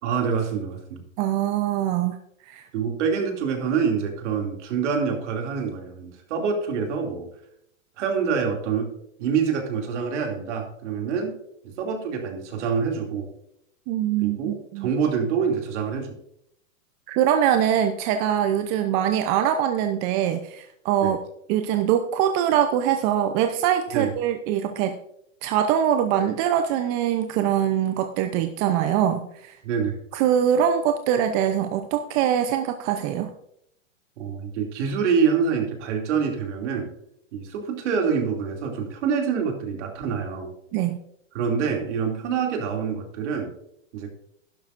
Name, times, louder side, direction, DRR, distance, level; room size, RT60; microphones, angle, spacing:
voice 1, 0.0-1.0 2.7-7.3 8.0-8.9 9.2-11.4 11.6-13.3 14.2-16.2 21.0-21.1 23.9-24.1 29.6-30.0 34.2-36.9 37.3-40.5 41.3-43.5 43.9-44.1, right 6 dB, 60° right, 2 dB, 2.8 m, -26 dB
voice 2, 1.2-2.2 2.5-2.7 13.9-14.9 17.1-21.2 21.5-24.9 25.4-29.6 30.1-33.3 40.7-41.0, right 10 dB, 35° right, 7 dB, 0.7 m, -23 dB
11.5 x 11.5 x 2.6 m, 0.72 s
hypercardioid pair, 130°, 40 cm